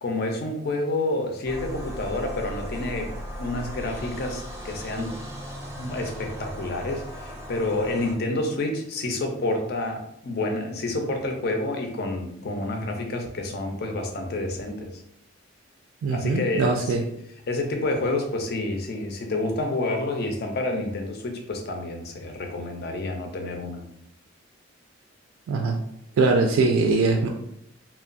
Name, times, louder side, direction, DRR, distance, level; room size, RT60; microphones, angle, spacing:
voice 1, 0.0-3.1 3.4-5.2 5.8-14.9 16.1-17.1 17.5-23.8, left 2 dB, 55° left, 3 dB, 0.5 m, -29 dB
sound 1, 1.5-8.2, equal, 15° right, 0.4 m, -37 dB
voice 2, 16.0-17.0 25.5-25.8 26.2-27.3, right 3 dB, 90° right, 3 dB, 0.3 m, -21 dB
2.9 x 2.2 x 2.5 m, 0.75 s
head